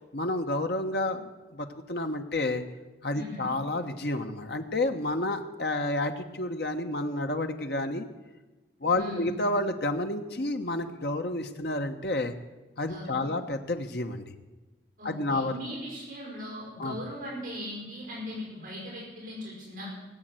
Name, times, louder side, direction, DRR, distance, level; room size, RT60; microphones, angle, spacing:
voice 1, 0.1-2.6 3.0-8.1 8.8-12.3 12.8-14.2 15.0-15.5 16.8-17.0, left 2 dB, 60° left, 6 dB, 1.1 m, -30 dB
voice 2, 3.1-3.5 8.9-9.3 12.9-13.3 15.0-20.0, left 1 dB, 50° right, -3 dB, 5.5 m, -39 dB
18.0 x 7.8 x 7.8 m, 1.2 s
head